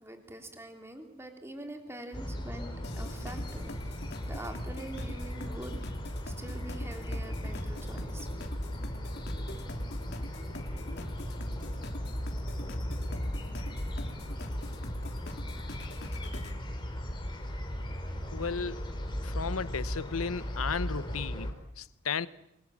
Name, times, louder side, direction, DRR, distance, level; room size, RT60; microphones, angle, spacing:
voice 1, 0.0-3.9 4.3-5.8 6.2-8.3, right 1 dB, 10° right, 3.2 m, -44 dB
sound 1, 2.1-21.5, equal, 20° left, 3.8 m, -37 dB
sound 2, 2.8-16.6, left 1 dB, 50° left, 3.0 m, -43 dB
voice 2, 18.3-18.8 19.2-22.3, left 5 dB, 85° left, 1.0 m, -34 dB
28.5 x 22.5 x 7.6 m
head